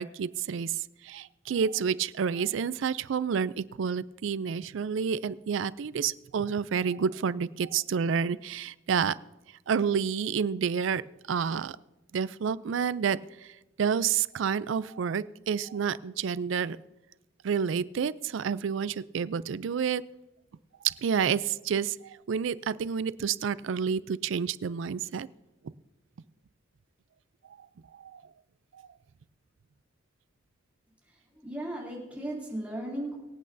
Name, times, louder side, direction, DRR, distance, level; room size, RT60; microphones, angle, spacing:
voice 1, 0.0-9.2 9.7-11.0 11.3-11.8 12.1-13.5 13.8-16.8 17.4-20.0 20.8-25.3 28.0-28.2, right 7 dB, 70° right, 18 dB, 0.4 m, -29 dB
voice 2, 31.0-33.2, right 1 dB, 5° right, -4 dB, 2.8 m, -36 dB
24.5 x 8.5 x 2.7 m, 1.1 s
head